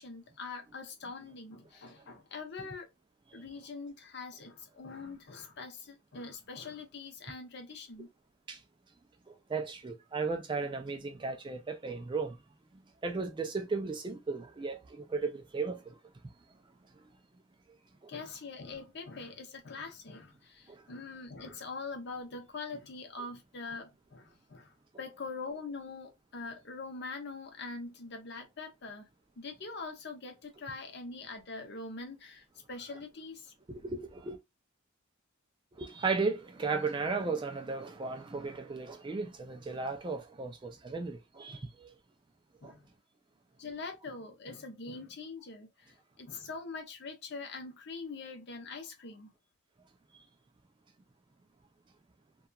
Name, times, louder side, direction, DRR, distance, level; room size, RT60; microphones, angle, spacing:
voice 1, 0.0-2.9 3.3-8.1 18.1-29.1 29.4-33.5 42.6-42.9 43.6-49.3, left 4 dB, 55° left, 0.7 m, -43 dB
voice 2, 9.3-12.4 13.0-15.9 33.7-34.4 35.8-41.9 42.6-42.7, right 4 dB, 25° right, 0.3 m, -35 dB
2.8 x 2.2 x 2.3 m
head